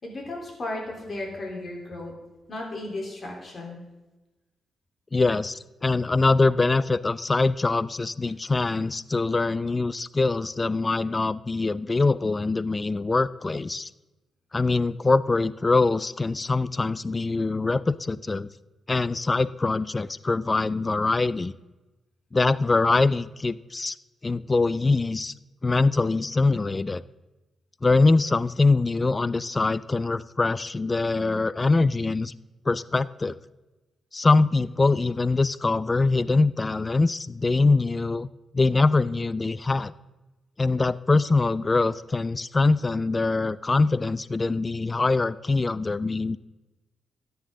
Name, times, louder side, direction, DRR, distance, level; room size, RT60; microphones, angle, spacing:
voice 1, 0.0-2.1 2.5-3.8, left 2 dB, 45° left, 0 dB, 3.8 m, -35 dB
voice 2, 5.1-13.9 14.5-18.5 18.9-21.5 22.3-23.9 24.2-25.3 25.6-27.0 27.8-32.3 32.7-33.4 34.1-38.3 38.5-39.9 40.6-46.4, left 3 dB, 30° left, 18 dB, 0.4 m, -23 dB
13.5 x 9.5 x 3.8 m, 1.1 s
cardioid pair, 75°, 0 cm